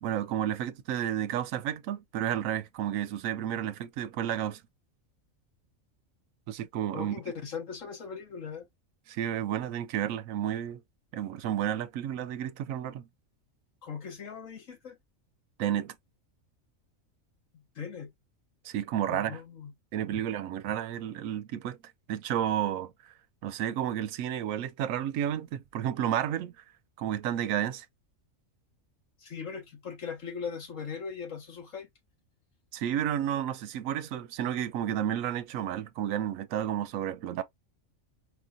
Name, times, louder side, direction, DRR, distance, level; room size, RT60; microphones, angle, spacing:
voice 1, 0.0-4.6 6.5-7.2 9.1-10.8 11.1-13.1 15.6-15.9 18.6-19.4 19.9-21.8 22.1-22.9 23.4-26.5 27.0-27.9 32.7-37.4, right 10 dB, 80° right, 1.0 m, -31 dB
voice 2, 6.9-8.7 13.8-15.0 17.8-18.1 19.1-19.7 20.1-20.2 29.2-31.9, left 6 dB, 70° left, 1.8 m, -39 dB
4.7 x 2.6 x 2.5 m
omnidirectional pair, 1.4 m